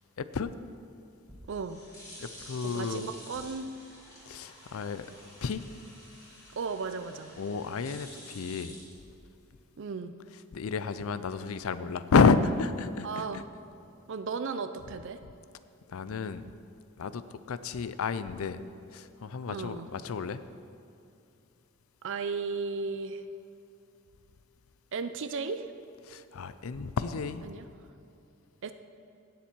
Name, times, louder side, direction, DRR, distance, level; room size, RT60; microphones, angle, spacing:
voice 1, 0.2-0.5 2.2-3.1 4.3-5.1 5.4-5.6 7.4-8.8 10.5-13.2 15.9-16.5 17.0-18.6 18.9-20.4 26.1-27.5, left 5 dB, 75° left, 13 dB, 0.5 m, -30 dB
sound 1, 1.1-9.6, left 1 dB, 15° left, 2.5 m, -50 dB
voice 2, 1.5-1.8 2.6-3.7 6.6-7.4 9.8-10.2 13.0-13.4 14.1-15.2 19.5-19.9 22.0-23.2 24.9-25.7 27.4-27.6 28.6-28.7, right 4 dB, 60° right, 10 dB, 0.5 m, -35 dB
17.0 x 7.2 x 4.5 m, 2.7 s
head